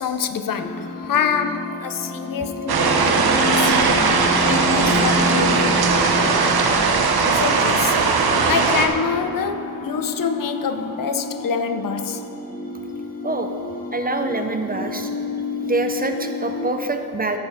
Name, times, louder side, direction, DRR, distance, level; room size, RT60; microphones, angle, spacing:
voice 1, 0.0-4.0 4.4-5.8 7.3-8.1 8.5-12.3, left 6 dB, 60° left, 0.6 m, -26 dB
sound 1, 0.6-16.7, left 2 dB, 20° left, 0.8 m, -30 dB
sound 2, 2.7-8.9, right 4 dB, 80° right, 0.9 m, -18 dB
voice 2, 13.9-15.1 15.6-17.4, right 2 dB, 25° right, 0.4 m, -25 dB
15.5 x 5.5 x 4.8 m
wide cardioid pair, 180°, 37 cm